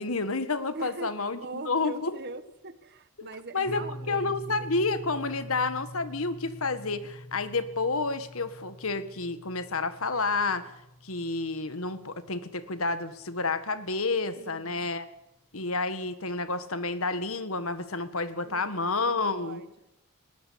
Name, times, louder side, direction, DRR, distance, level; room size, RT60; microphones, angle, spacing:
voice 1, 0.0-2.2 3.2-10.7 11.0-15.1 15.5-19.6, left 3 dB, 70° left, 12 dB, 1.6 m, -30 dB
voice 2, 0.7-1.1 1.4-4.6 14.4-14.9 18.4-19.9, right 3 dB, 50° right, 13 dB, 1.3 m, -42 dB
sound 1, 3.6-13.6, equal, 45° left, 1.5 m, -45 dB
20.5 x 19.0 x 8.6 m, 0.89 s
head